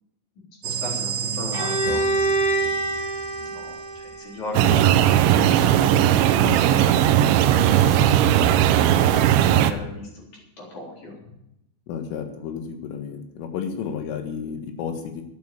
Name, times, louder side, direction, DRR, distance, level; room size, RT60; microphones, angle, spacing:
voice 1, 0.6-2.0 3.5-7.0 7.5-10.2 10.6-11.2, left 2 dB, 40° left, -3 dB, 4.7 m, -36 dB
sound 1, 0.6-4.3, right 7 dB, 60° right, 3.2 m, -32 dB
Bowed string instrument, 1.5-5.3, right 2 dB, 5° right, 5.0 m, -26 dB
sound 2, 4.5-9.7, right 11 dB, 80° right, 2.9 m, -17 dB
voice 2, 11.9-15.2, left 7 dB, 85° left, 6 dB, 4.2 m, -32 dB
11.5 x 9.3 x 8.8 m, 0.83 s
omnidirectional pair, 5.7 m